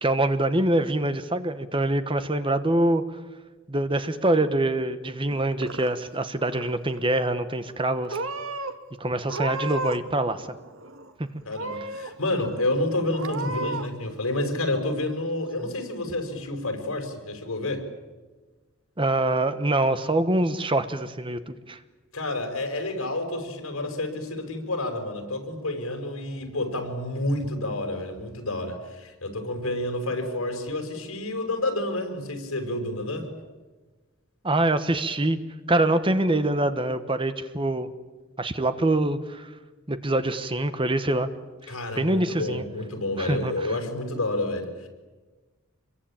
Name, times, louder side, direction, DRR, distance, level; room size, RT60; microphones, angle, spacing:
voice 1, 0.0-3.0 3.7-8.2 9.0-10.5 19.0-21.4 21.7-21.8 34.4-35.4 35.7-37.9 38.4-39.5 39.9-41.3 41.6-42.6 43.2-43.7, right 1 dB, 25° right, 10 dB, 1.1 m, -24 dB
Purr / Meow, 5.3-6.2 6.5-7.0 7.7-8.7 9.2-10.1 10.4-11.1 11.5-12.1 12.6-12.7 13.1-13.9, right 3 dB, 65° right, 1.7 m, -33 dB
voice 2, 11.4-17.9 22.1-33.3 41.7-44.9, left 1 dB, 75° left, 5 dB, 5.4 m, -29 dB
26.5 x 23.0 x 8.8 m, 1.3 s
head